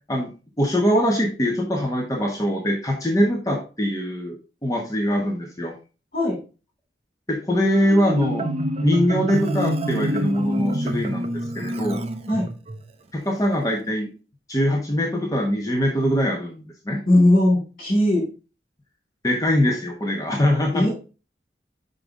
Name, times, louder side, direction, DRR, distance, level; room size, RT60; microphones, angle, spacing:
voice 1, 0.6-4.3 4.6-5.7 7.3-8.5 8.8-12.0 13.1-14.1 14.5-17.0 19.2-20.9, equal, 20° left, 0 dB, 1.0 m, -22 dB
Marimba xylophone, 7.7-12.8, equal, 35° right, 0.5 m, -27 dB
voice 2, 17.1-18.3 20.7-20.9, left 1 dB, 45° left, -4 dB, 3.1 m, -18 dB
5.7 x 5.3 x 3.6 m, 0.33 s
head